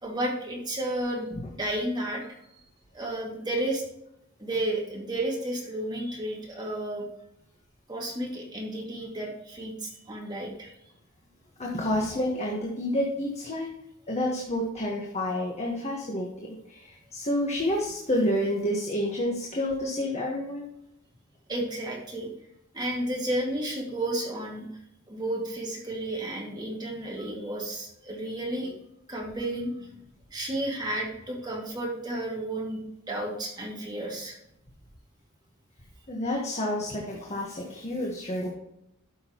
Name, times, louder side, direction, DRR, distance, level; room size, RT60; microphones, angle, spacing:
voice 1, 0.0-2.3 2.9-3.8 4.4-7.0 7.9-10.7 21.5-22.3 22.7-24.7 25.1-28.7 29.1-29.9 30.3-34.3, right 1 dB, 20° right, -2 dB, 2.4 m, -32 dB
voice 2, 11.6-13.7 14.1-20.7 36.1-38.5, left 1 dB, 30° left, -1 dB, 1.5 m, -29 dB
12.5 x 6.5 x 3.1 m, 0.81 s
head